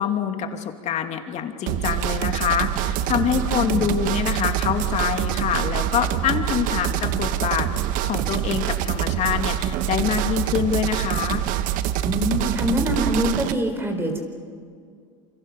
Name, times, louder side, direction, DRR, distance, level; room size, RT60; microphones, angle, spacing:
voice 1, 0.0-7.7 8.0-11.4, left 8 dB, 45° left, 5 dB, 2.8 m, -25 dB
sound 1, 1.7-13.5, right 11 dB, 60° right, 1.3 m, -25 dB
voice 2, 3.5-3.9 12.0-14.2, equal, 15° right, 3 dB, 4.3 m, -24 dB
28.5 x 25.5 x 6.8 m, 2.1 s
supercardioid pair, 100°, 16 cm